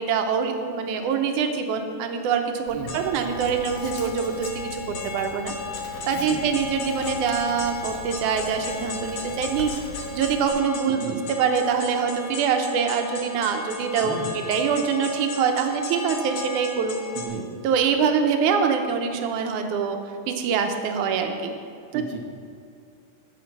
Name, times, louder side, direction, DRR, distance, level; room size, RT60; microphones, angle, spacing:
voice 1, 0.0-5.5 6.1-9.7 10.1-11.1 11.4-17.0 17.6-20.0 20.3-21.5 21.9-22.0, right 6 dB, 85° right, 5 dB, 2.2 m, -24 dB
Writing, 2.7-10.5, left 3 dB, 70° left, 0.9 m, -41 dB
sound 1, 2.9-17.3, left 4 dB, 50° left, 1.5 m, -35 dB
voice 2, 6.1-6.4 10.8-11.2 14.0-14.4 17.1-17.4 21.9-22.2, right 5 dB, 60° right, 2 dB, 1.4 m, -34 dB
13.0 x 5.1 x 5.9 m, 2.5 s
omnidirectional pair, 3.5 m